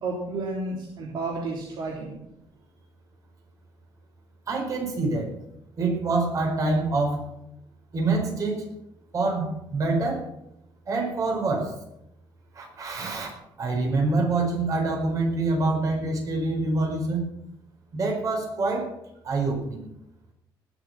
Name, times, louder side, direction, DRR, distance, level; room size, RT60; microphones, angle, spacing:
voice 1, 0.0-2.2, right 3 dB, 55° right, -3 dB, 3.4 m, -31 dB
voice 2, 4.5-5.3 5.8-7.3 7.9-8.7 9.1-10.3 10.9-11.7 12.5-13.3 13.6-17.3 17.9-18.9 19.2-19.9, right 3 dB, 40° right, 1 dB, 4.7 m, -26 dB
20.0 x 7.4 x 6.0 m, 0.82 s
cardioid pair, 145°, 9 cm